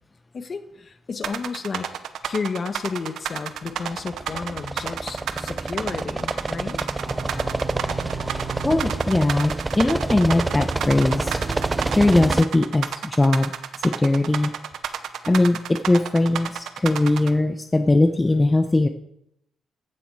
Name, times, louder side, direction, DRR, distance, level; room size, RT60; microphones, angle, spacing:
voice 1, 0.3-1.9 2.2-6.8, left 4 dB, 40° left, 9 dB, 1.2 m, -32 dB
sound 1, 1.2-17.3, right 9 dB, 70° right, 0.9 m, -31 dB
sound 2, 3.8-12.5, right 2 dB, 20° right, 0.5 m, -28 dB
sound 3, 7.0-12.0, right 4 dB, 50° right, 4.3 m, -37 dB
voice 2, 8.6-11.4 11.9-14.5 15.3-18.9, left 2 dB, 15° left, 7 dB, 0.8 m, -20 dB
14.5 x 7.3 x 4.8 m, 0.76 s
cardioid pair, 90°, 0 cm